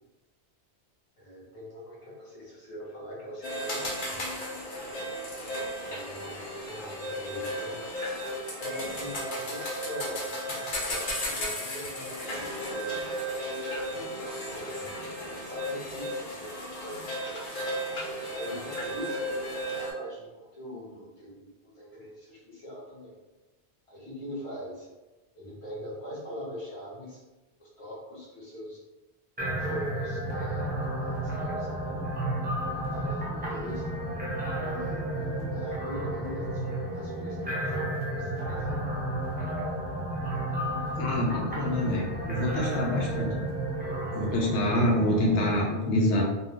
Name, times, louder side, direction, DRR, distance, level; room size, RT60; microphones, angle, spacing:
voice 1, 1.2-3.9 5.8-7.9 8.6-13.0 13.9-14.8 15.4-17.5 18.3-19.3 19.7-23.2 23.9-24.9 25.3-27.2 27.6-28.8 29.6-32.1 32.8-34.0 34.6-37.7 38.1-38.8, equal, 30° left, -7 dB, 1.0 m, -42 dB
sound 1, 3.4-19.9, equal, 50° left, 0.8 m, -34 dB
sound 2, 29.4-45.6, right 1 dB, 10° right, 0.6 m, -32 dB
voice 2, 41.0-43.3 44.1-46.2, left 1 dB, 80° left, -2 dB, 0.9 m, -26 dB
2.6 x 2.2 x 3.4 m, 1.1 s
omnidirectional pair, 1.1 m